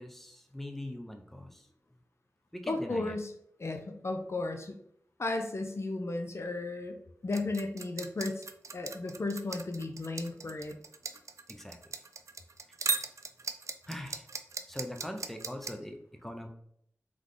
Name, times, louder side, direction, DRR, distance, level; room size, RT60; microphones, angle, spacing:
voice 1, 0.0-1.7 2.5-3.2 11.1-11.2 11.5-11.8 13.9-14.3 14.7-16.5, left 1 dB, 5° left, 4 dB, 0.6 m, -42 dB
voice 2, 2.7-3.3 3.6-4.7 5.2-7.0 7.2-8.4 8.7-10.7, left 2 dB, 55° left, 5 dB, 0.5 m, -34 dB
sound 1, 7.3-15.7, right 4 dB, 65° right, 0.4 m, -37 dB
3.6 x 3.2 x 3.8 m, 0.70 s
wide cardioid pair, 60°, 6 cm